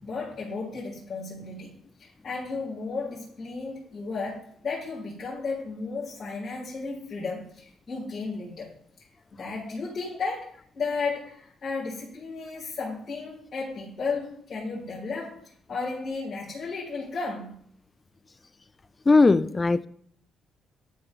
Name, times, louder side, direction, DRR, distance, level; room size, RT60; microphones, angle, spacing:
voice 1, 0.0-1.7 2.0-8.7 9.3-17.6, left 4 dB, 50° left, 3.7 m, -34 dB
voice 2, 19.1-19.9, left 3 dB, 25° left, 0.3 m, -19 dB
12.0 x 4.7 x 3.2 m
cardioid pair, 90°, 0 cm